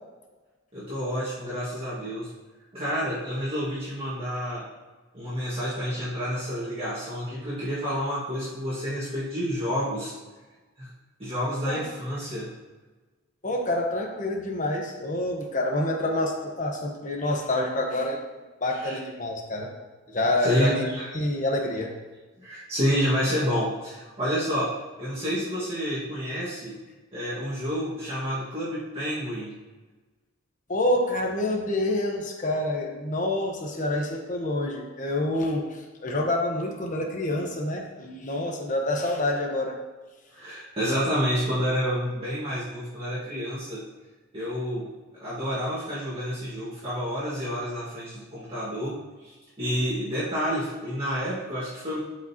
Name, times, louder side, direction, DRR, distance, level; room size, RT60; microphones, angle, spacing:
voice 1, 0.7-2.3 2.7-4.6 5.1-10.1 10.8-10.9 11.2-12.5 18.8-19.0 20.4-21.1 22.4-26.8 27.1-29.5 40.3-43.8 44.3-44.9 45.2-52.0, equal, 25° right, -10 dB, 1.8 m, -29 dB
voice 2, 13.4-18.2 18.6-19.7 20.1-20.9 21.1-21.9 30.7-39.7, left 1 dB, 40° left, 0 dB, 1.1 m, -27 dB
11.5 x 5.2 x 2.9 m, 1.3 s
head